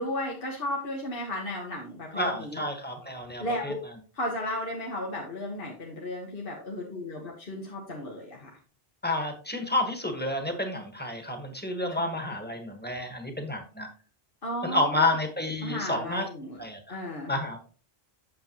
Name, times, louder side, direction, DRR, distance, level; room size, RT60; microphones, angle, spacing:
voice 1, 0.0-2.6 3.4-3.8 4.1-8.5 11.9-12.1 14.4-15.1 15.6-16.6 16.9-17.3, left 1 dB, 60° left, -1 dB, 1.6 m, -34 dB
voice 2, 2.1-3.7 9.0-13.9 14.6-16.3 16.6-17.0 17.3-17.6, left 1 dB, 10° left, 4 dB, 1.5 m, -30 dB
8.6 x 7.1 x 3.0 m, 0.39 s
omnidirectional pair, 1.0 m